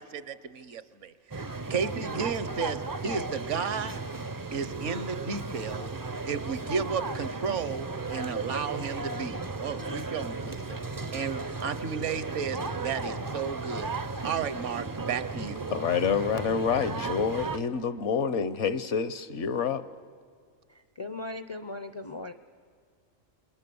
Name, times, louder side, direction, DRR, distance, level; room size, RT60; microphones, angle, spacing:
voice 1, 0.0-4.0 4.5-5.9 6.3-10.6 11.1-13.9 14.2-15.6, right 6 dB, 65° right, 14 dB, 1.1 m, -33 dB
sound 1, 1.3-17.6, right 3 dB, 25° right, 0.4 m, -35 dB
voice 2, 15.7-19.8, left 6 dB, 65° left, 13 dB, 1.1 m, -28 dB
voice 3, 20.7-22.3, left 2 dB, 35° left, 10 dB, 0.4 m, -38 dB
27.5 x 21.5 x 6.9 m, 2.1 s
omnidirectional pair, 1.4 m